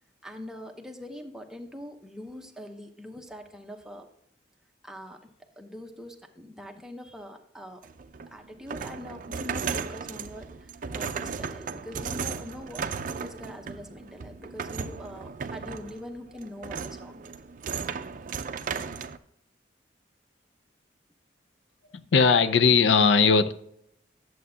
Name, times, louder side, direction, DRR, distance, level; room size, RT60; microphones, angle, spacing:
voice 1, 0.2-4.1 4.8-7.8 8.3-17.5, left 1 dB, 5° right, 2 dB, 0.8 m, -43 dB
sound 1, 7.8-19.2, right 5 dB, 45° right, 0.4 m, -36 dB
voice 2, 21.9-23.5, left 5 dB, 80° left, 11 dB, 0.5 m, -19 dB
11.0 x 7.7 x 2.7 m, 0.74 s
head